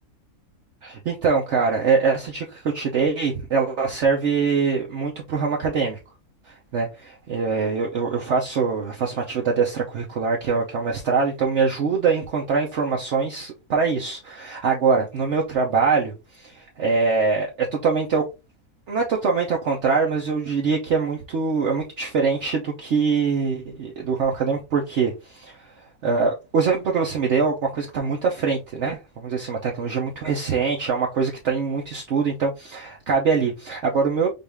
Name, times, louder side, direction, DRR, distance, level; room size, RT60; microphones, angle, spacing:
voice 1, 0.8-6.0 6.7-18.2 18.9-25.6 26.0-34.3, right 5 dB, 55° right, 1.0 m, -23 dB
5.5 x 2.6 x 3.4 m
omnidirectional pair, 1.6 m